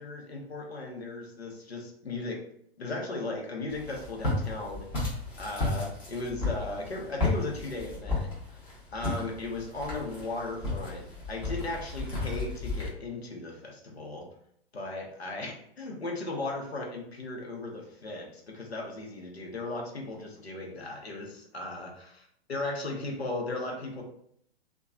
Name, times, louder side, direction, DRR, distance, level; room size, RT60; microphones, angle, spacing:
voice 1, 0.0-2.4 2.8-8.3 8.9-14.3 14.7-21.9 22.5-24.0, left 2 dB, 75° left, 0 dB, 0.9 m, -36 dB
Walk footsteps, 3.7-12.9, left 2 dB, 15° left, 0.9 m, -33 dB
2.9 x 2.3 x 2.4 m, 0.69 s
figure-of-eight pair, 120°, 31 cm